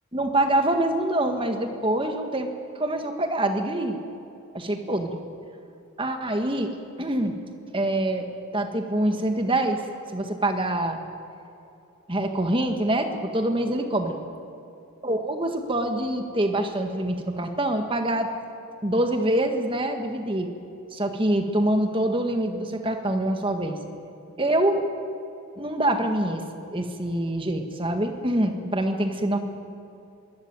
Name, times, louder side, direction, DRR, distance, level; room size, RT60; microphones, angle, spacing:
voice 1, 0.1-2.5 2.8-4.0 4.5-5.2 6.0-7.4 7.7-8.2 8.5-9.8 10.1-11.0 12.1-14.2 15.0-18.3 18.8-20.5 20.9-23.8 24.4-24.8 25.5-26.4 26.7-29.4, right 1 dB, 25° right, 5 dB, 1.7 m, -25 dB
23.0 x 18.0 x 9.0 m, 2.8 s
head